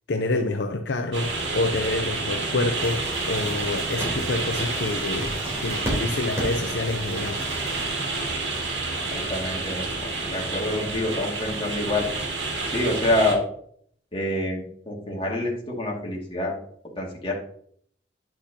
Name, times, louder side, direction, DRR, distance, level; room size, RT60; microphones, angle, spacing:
voice 1, 0.1-3.0 3.3-5.3 5.6-7.4, left 2 dB, 70° left, 5 dB, 0.6 m, -27 dB
sound 1, 1.1-13.3, right 3 dB, 85° right, 2.0 m, -29 dB
sound 2, 2.8-7.8, equal, 15° right, 3.5 m, -34 dB
voice 2, 9.1-12.1 12.7-13.4 14.1-16.5 17.0-17.3, left 1 dB, 30° left, -3 dB, 2.3 m, -27 dB
10.0 x 6.1 x 2.9 m, 0.63 s
head